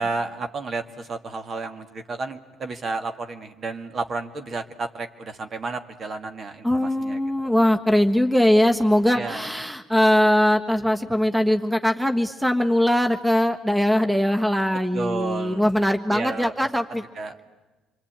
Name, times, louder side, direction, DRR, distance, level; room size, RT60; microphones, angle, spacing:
voice 1, 0.0-7.5 9.1-9.5 14.9-15.6 16.1-16.5 16.9-17.4, right 3 dB, 45° right, 7 dB, 2.1 m, -32 dB
voice 2, 6.6-17.0, left 1 dB, 5° right, 6 dB, 1.5 m, -21 dB
27.0 x 23.5 x 9.0 m, 1.2 s
supercardioid pair, 70°, 0 cm